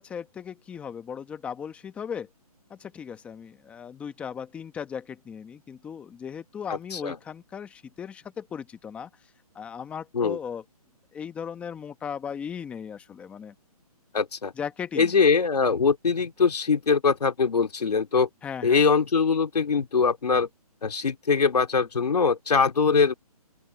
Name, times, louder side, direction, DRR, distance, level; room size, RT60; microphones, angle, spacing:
voice 1, 0.0-2.3 2.7-9.1 9.5-10.6 11.1-13.5 14.6-15.1 18.4-18.8, left 7 dB, 5° left, 1.1 m, -37 dB
voice 2, 6.7-7.2 10.1-10.4 14.1-14.5 15.0-18.3 18.6-20.5 20.8-23.1, left 5 dB, 85° left, 2.9 m, -22 dB
open air
hypercardioid pair, 165°, 20 cm